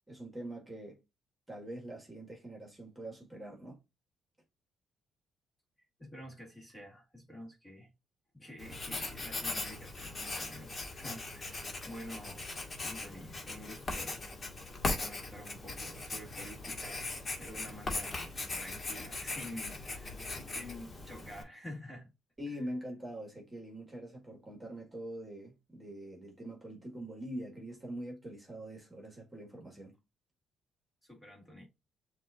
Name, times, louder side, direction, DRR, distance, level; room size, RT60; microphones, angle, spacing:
voice 1, 0.1-1.0 1.5-3.8 22.4-29.9, right 1 dB, 15° right, 1.6 m, -44 dB
voice 2, 6.0-7.9 8.3-12.4 12.7-14.3 14.9-20.2 20.5-22.1 22.5-22.6 31.0-31.7, left 1 dB, 15° left, 1.8 m, -49 dB
Writing, 8.6-21.4, left 2 dB, 35° left, 1.4 m, -39 dB
7.5 x 2.5 x 2.5 m
cardioid pair, 90°, 0 cm